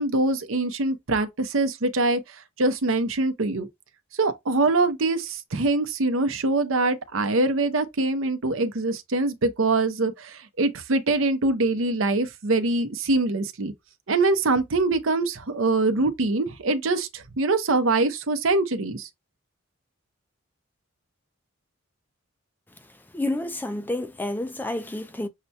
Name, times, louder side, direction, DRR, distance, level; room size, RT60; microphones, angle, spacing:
voice 1, 0.0-2.2 2.6-3.7 4.2-13.7 14.1-19.1, right 2 dB, 70° right, 0.7 m, -24 dB
voice 2, 23.1-25.3, left 1 dB, 10° left, 0.3 m, -29 dB
6.5 x 2.2 x 2.7 m
head